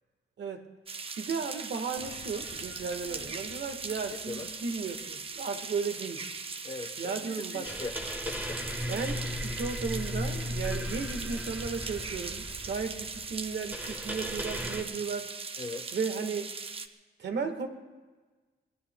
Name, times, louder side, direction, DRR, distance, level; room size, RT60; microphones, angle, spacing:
voice 1, 0.4-0.7 1.2-6.3 7.0-7.7 8.9-15.3 15.9-16.5 17.2-17.7, right 5 dB, 80° right, 6 dB, 1.4 m, -35 dB
sound 1, 0.9-16.9, right 4 dB, 30° right, 0.6 m, -40 dB
sound 2, 2.0-6.7, left 5 dB, 85° left, 1.6 m, -52 dB
voice 2, 6.6-7.9 8.3-8.6 15.6-16.0, left 3 dB, 35° left, 0 dB, 0.9 m, -40 dB
sound 3, 7.6-14.8, equal, 10° right, 1.5 m, -36 dB
26.0 x 21.0 x 2.2 m, 1.3 s
wide cardioid pair, 175°, 18 cm